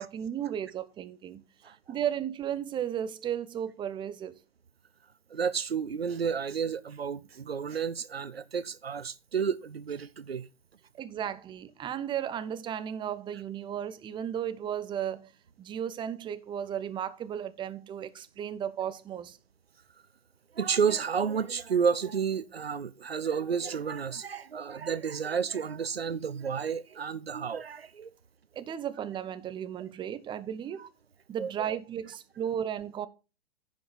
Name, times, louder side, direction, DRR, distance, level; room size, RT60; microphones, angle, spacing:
voice 1, 0.0-1.4 1.9-4.4 11.0-15.3 15.6-19.4 28.5-30.8 31.3-33.1, right 9 dB, 15° right, 0.7 m, -34 dB
voice 2, 5.3-10.5 20.6-28.1 31.4-31.5, right 6 dB, 85° right, 0.7 m, -31 dB
10.0 x 5.2 x 5.8 m
figure-of-eight pair, 105°, 30 cm